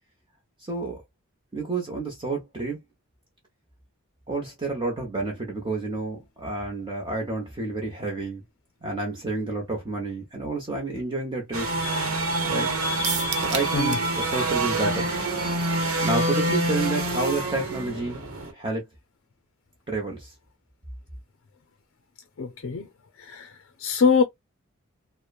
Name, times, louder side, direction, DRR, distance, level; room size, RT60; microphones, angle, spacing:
voice 1, 0.6-1.0 1.5-2.8 4.3-8.4 8.8-11.7 12.5-12.7 13.4-15.2 16.0-18.2 18.5-18.8 19.9-20.3, right 3 dB, 20° right, 0.7 m, -29 dB
sound 1, 11.5-18.5, right 1 dB, 80° right, 0.9 m, -26 dB
sound 2, 13.0-14.1 14.4-14.5 14.9-15.0, right 9 dB, 50° right, 0.4 m, -31 dB
voice 2, 22.4-22.9 23.2-23.5 23.8-24.2, left 5 dB, 60° left, 0.4 m, -23 dB
2.9 x 2.0 x 2.2 m
head